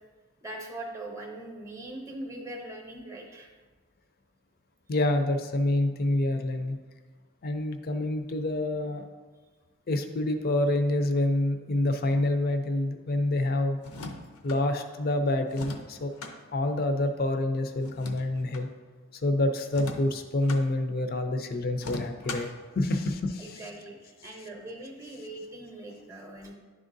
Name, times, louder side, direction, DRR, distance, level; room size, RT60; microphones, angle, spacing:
voice 1, 0.4-3.5 22.3-22.5 23.4-26.5, right 1 dB, 15° right, 1 dB, 0.7 m, -41 dB
voice 2, 4.9-6.8 7.4-9.1 9.9-13.8 14.4-16.1 16.5-18.7 19.1-22.5 22.7-23.6, left 1 dB, 45° left, 7 dB, 0.5 m, -27 dB
sound 1, 13.8-14.6 15.5-16.4 17.8-18.7 19.7-20.6 21.8-22.6, left 3 dB, 80° left, 0.6 m, -40 dB
10.5 x 3.7 x 2.6 m, 1.3 s
head